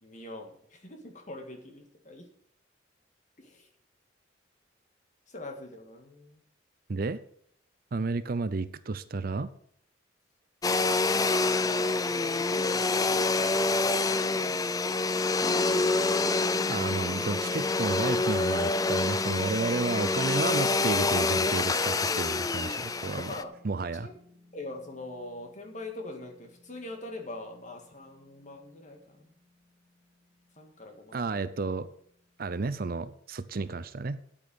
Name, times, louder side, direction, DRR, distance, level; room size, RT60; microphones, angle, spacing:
voice 1, 0.0-2.3 3.4-3.7 5.3-6.4 11.1-16.0 23.3-23.5 24.0-24.1 24.5-29.3 30.6-31.3, left 2 dB, 40° left, 3 dB, 1.9 m, -43 dB
voice 2, 7.9-9.5 16.7-23.3 23.6-24.1 31.1-31.9 32.4-34.2, right 3 dB, 50° right, 14 dB, 0.5 m, -32 dB
Domestic sounds home sounds, 10.6-23.4, left 3 dB, 20° left, 0.4 m, -27 dB
Piano, 15.4-27.6, left 1 dB, 15° right, 1.0 m, -45 dB
8.8 x 8.8 x 6.4 m, 0.65 s
head